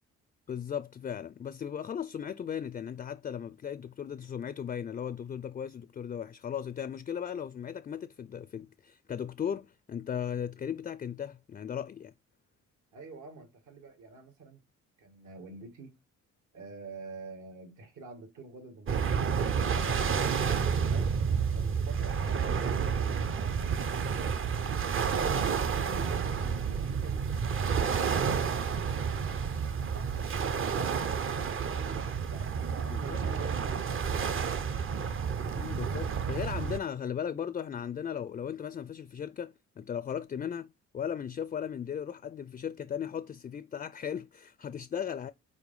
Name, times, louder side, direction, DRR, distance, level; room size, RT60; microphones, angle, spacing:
voice 1, 0.5-12.1 32.9-33.2 35.6-45.3, left 8 dB, 30° left, 0.3 m, -37 dB
voice 2, 12.9-14.6 15.0-15.9 16.5-21.1 21.5-23.0 23.3-24.0 24.5-31.0 31.7-34.5, right 4 dB, 70° right, 2.0 m, -47 dB
sound 1, 18.9-36.8, right 6 dB, 45° right, 0.7 m, -30 dB
4.8 x 4.3 x 5.4 m
cardioid pair, 90°, 30 cm